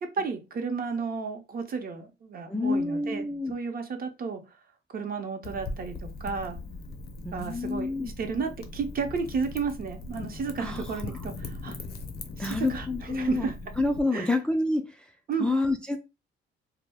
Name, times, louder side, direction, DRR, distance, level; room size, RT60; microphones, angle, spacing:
voice 1, 0.0-4.6 4.9-6.6 7.3-11.8 12.4-13.6 14.1-14.3 15.3-15.5, right 5 dB, 50° right, 0.7 m, -33 dB
voice 2, 2.5-3.5 7.2-8.1 10.6-10.8 12.4-13.5 13.8-14.9 15.4-16.0, left 2 dB, 5° left, 0.3 m, -28 dB
Wind / Fire, 5.4-14.0, left 3 dB, 55° left, 0.6 m, -40 dB
2.2 x 2.0 x 3.3 m
cardioid pair, 90°, 20 cm